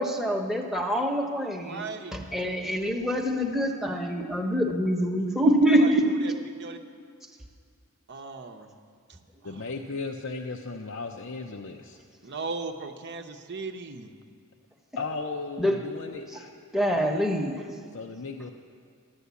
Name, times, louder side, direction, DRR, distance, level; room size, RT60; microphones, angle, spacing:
voice 1, 0.0-1.8 2.1-6.1 15.6-15.8 16.7-17.6, equal, ahead, 1 dB, 1.0 m, -25 dB
voice 2, 1.6-2.2 5.7-5.9 6.2-6.3 6.6-6.8 8.1-8.7 9.4-9.6 12.2-14.1, right 4 dB, 50° right, 5 dB, 0.8 m, -37 dB
voice 3, 9.4-12.0 15.0-16.5 16.9-17.1 17.9-18.5, left 3 dB, 60° left, 3 dB, 0.6 m, -36 dB
12.0 x 11.5 x 8.2 m, 2.1 s
head